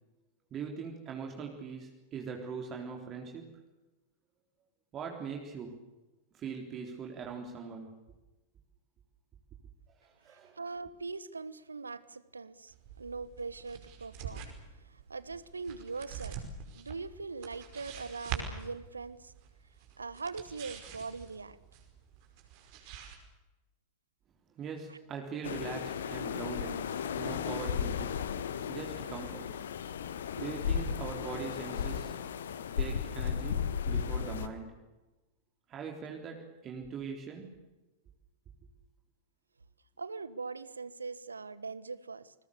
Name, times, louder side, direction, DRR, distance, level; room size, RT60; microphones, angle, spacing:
voice 1, 0.5-3.5 4.9-5.8 6.3-8.0 10.0-10.6 24.6-26.9 27.2-28.3 28.7-29.6 30.4-32.2 32.7-34.8 35.7-37.6, right 6 dB, 30° right, 2 dB, 3.6 m, -41 dB
voice 2, 10.3-16.4 16.7-19.3 20.0-21.6 24.9-25.0 40.0-42.3, right 4 dB, 75° right, 18 dB, 1.2 m, -41 dB
sound 1, 12.7-23.2, right 7 dB, 45° right, 5.2 m, -45 dB
sound 2, 25.4-34.5, left 7 dB, 65° left, 1.6 m, -35 dB
29.0 x 21.5 x 6.9 m, 1.1 s
figure-of-eight pair, 90°, 0 cm